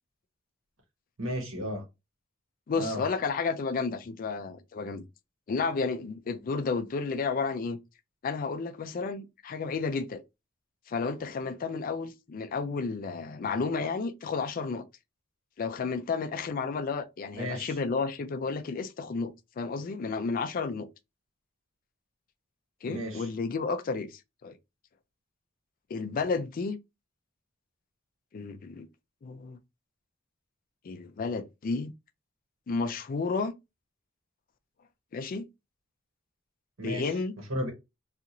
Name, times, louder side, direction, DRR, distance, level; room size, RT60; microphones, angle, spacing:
voice 1, 1.2-1.8 2.8-3.0 17.4-17.7 22.9-23.3 36.8-37.1 37.5-37.7, equal, 85° right, 1.1 m, -33 dB
voice 2, 2.7-5.0 5.5-7.8 8.2-10.2 10.9-14.8 15.6-20.9 22.8-24.6 25.9-26.8 28.3-28.9 29.2-29.6 30.8-31.9 32.7-33.6 35.1-35.5 36.8-37.3, left 4 dB, 45° left, 0.4 m, -32 dB
2.9 x 2.4 x 2.4 m
head